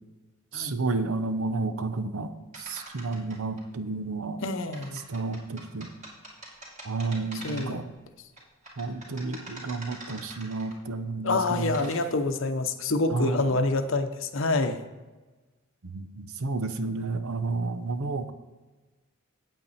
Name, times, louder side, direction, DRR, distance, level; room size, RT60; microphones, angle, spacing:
voice 1, 0.5-4.4 5.1-5.9 6.8-7.9 8.8-11.7 13.1-13.6 15.8-18.3, right 3 dB, 75° right, 10 dB, 0.8 m, -31 dB
sound 1, 2.5-3.6 4.7-7.9 8.4-10.9 11.5-12.0, right 1 dB, 35° right, 2.6 m, -44 dB
voice 2, 4.4-5.0 7.4-7.9 11.2-14.9, left 2 dB, 60° left, 8 dB, 0.8 m, -27 dB
8.9 x 8.5 x 4.2 m, 1.2 s
head